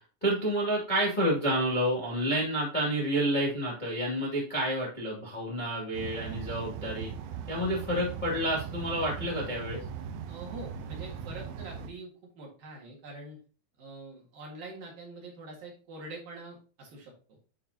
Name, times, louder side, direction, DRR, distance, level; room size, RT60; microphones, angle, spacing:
voice 1, 0.2-7.1 7.5-9.8, right 1 dB, 80° left, -6 dB, 0.4 m, -29 dB
sound 1, 5.9-11.9, right 7 dB, 80° right, 2.9 m, -39 dB
voice 2, 10.3-13.4 13.8-17.4, right 2 dB, 55° right, -2 dB, 2.9 m, -45 dB
11.5 x 4.6 x 2.8 m, 0.38 s
omnidirectional pair, 5.8 m